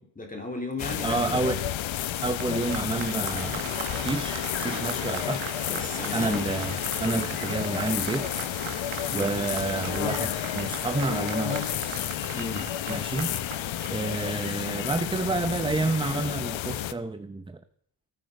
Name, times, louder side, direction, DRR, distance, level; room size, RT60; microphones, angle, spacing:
voice 1, 0.2-1.4 5.7-6.4 12.3-12.7, left 2 dB, 15° left, 4 dB, 4.1 m, -34 dB
sound 1, 0.8-16.9, left 12 dB, 70° left, 1.0 m, -31 dB
voice 2, 1.0-1.6 2.2-5.4 6.1-6.7 7.0-8.3 9.1-12.0 12.9-13.3 13.9-17.6, right 3 dB, 10° right, 10 dB, 0.8 m, -29 dB
Applause, 2.1-14.7, right 10 dB, 70° right, 1.7 m, -40 dB
17.5 x 14.0 x 5.4 m, 0.64 s
cardioid pair, 140°, 49 cm